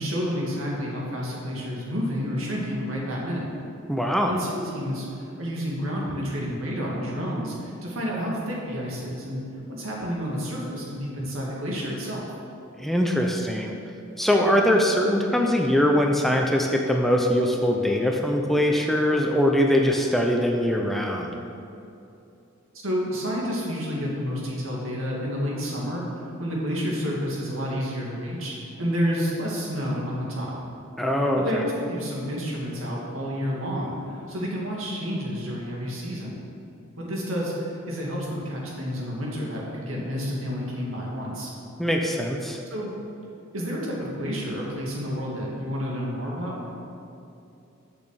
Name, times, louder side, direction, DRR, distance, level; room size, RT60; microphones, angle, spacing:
voice 1, 0.0-3.5 4.3-9.4 9.7-12.3 22.7-26.1 26.4-30.5 31.3-36.4 37.0-41.5 42.7-42.9 43.5-46.7, equal, 80° right, -3 dB, 2.2 m, -30 dB
voice 2, 3.9-4.4 12.8-13.7 14.2-21.3 31.0-31.6 41.8-42.6, equal, ahead, 1 dB, 0.6 m, -22 dB
7.1 x 6.1 x 6.6 m, 2.7 s
head